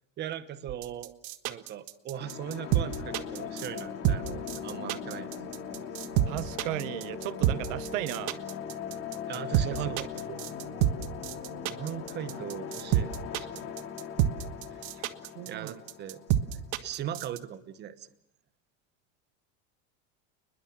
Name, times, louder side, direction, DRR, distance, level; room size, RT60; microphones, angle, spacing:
voice 1, 0.2-1.1 1.5-5.3 9.3-10.1 11.6-13.7 14.7-14.8 15.4-16.2 16.5-18.1, right 10 dB, 25° right, 1.1 m, -39 dB
sound 1, 0.7-17.4, right 12 dB, 55° right, 1.5 m, -28 dB
sound 2, 2.1-16.8, left 7 dB, 35° left, 3.5 m, -40 dB
voice 2, 6.3-8.4 9.6-10.4 12.3-12.4 14.9-15.8, right 17 dB, 85° right, 1.1 m, -36 dB
29.0 x 21.5 x 7.3 m
cardioid pair, 165°, 38 cm